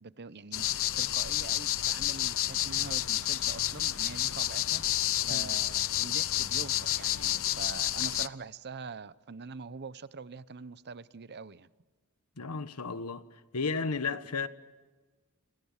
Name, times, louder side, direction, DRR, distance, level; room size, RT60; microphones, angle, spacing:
voice 1, 0.0-0.7 1.0-4.8 5.2-11.7, right 4 dB, 50° right, 0.8 m, -44 dB
sound 1, 0.5-8.3, left 13 dB, 65° left, 0.8 m, -30 dB
voice 2, 12.4-13.2 13.5-14.5, left 4 dB, 90° left, 1.3 m, -33 dB
29.5 x 26.0 x 7.3 m
head